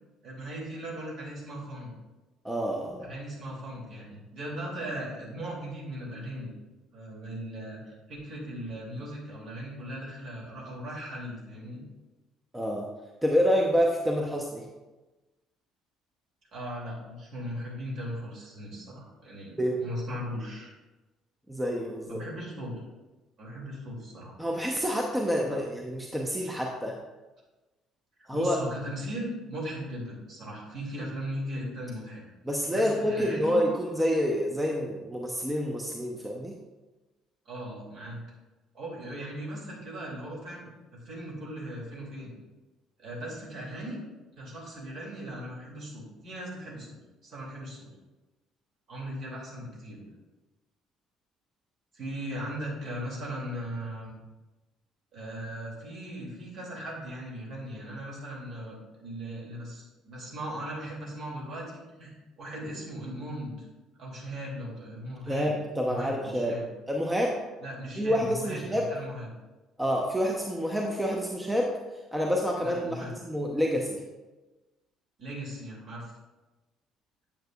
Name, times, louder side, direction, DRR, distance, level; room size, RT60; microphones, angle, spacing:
voice 1, 0.2-1.9 3.0-6.5 6.9-11.8 16.5-20.7 22.1-22.8 23.4-24.3 25.5-25.6 28.3-32.2 32.7-33.6 37.4-38.2 38.7-42.3 43.0-44.0 44.4-46.9 47.2-47.9 48.9-50.1 51.9-54.2 55.1-63.7 64.0-65.5 65.9-66.7 67.6-69.3 72.6-73.1 75.2-76.1, equal, 50° right, -3 dB, 2.5 m, -38 dB
voice 2, 2.4-3.1 12.5-12.9 13.2-14.7 19.6-19.8 21.5-22.2 24.4-27.0 28.3-28.6 32.5-36.5 65.3-66.5 66.9-67.4 68.0-68.9 69.8-71.7 72.1-74.0, equal, 10° right, 0 dB, 0.8 m, -28 dB
9.1 x 7.2 x 2.4 m, 1.1 s
figure-of-eight pair, 50°, 0 cm